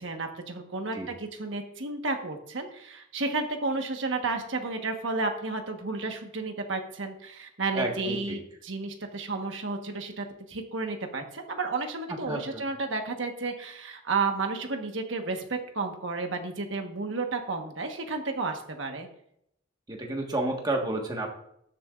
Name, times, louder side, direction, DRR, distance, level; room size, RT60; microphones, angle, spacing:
voice 1, 0.0-19.1, right 3 dB, 80° right, 4 dB, 1.3 m, -32 dB
voice 2, 7.7-8.4 12.3-12.6 19.9-21.3, right 2 dB, 20° right, 1 dB, 1.5 m, -31 dB
20.0 x 6.9 x 2.5 m, 0.73 s
head